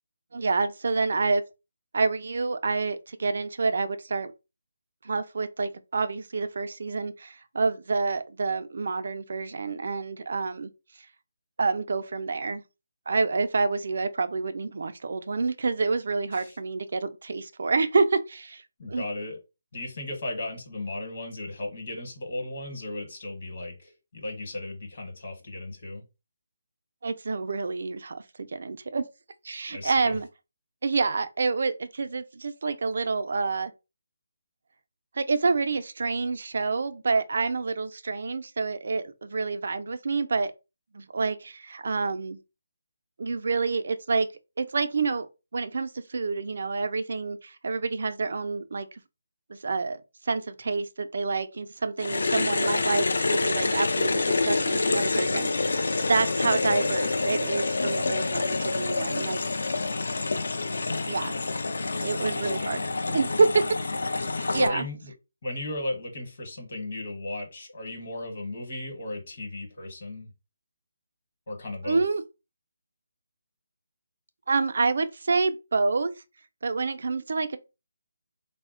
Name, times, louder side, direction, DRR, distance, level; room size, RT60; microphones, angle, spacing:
voice 1, 0.3-1.4 1.9-4.3 5.0-10.7 11.6-12.6 13.1-18.6 18.9-19.1 27.0-29.1 29.4-30.3 30.8-33.7 35.1-40.5 40.9-42.4 43.2-44.3 44.6-45.3 45.5-48.9 49.5-59.4 61.1-61.3 62.0-62.8 63.1-63.6 64.5-64.8 71.8-72.2 74.5-76.1 76.6-77.6, right 4 dB, 60° right, 0.4 m, -28 dB
voice 2, 18.8-19.4 19.7-26.0 29.7-30.2 56.6-57.0 62.2-62.9 64.5-65.1 65.4-70.3 71.5-72.0, left 2 dB, 50° left, 1.0 m, -35 dB
sound 1, 52.0-64.7, left 3 dB, 75° left, 0.3 m, -27 dB
3.5 x 2.0 x 2.4 m
hypercardioid pair, 170°, 0 cm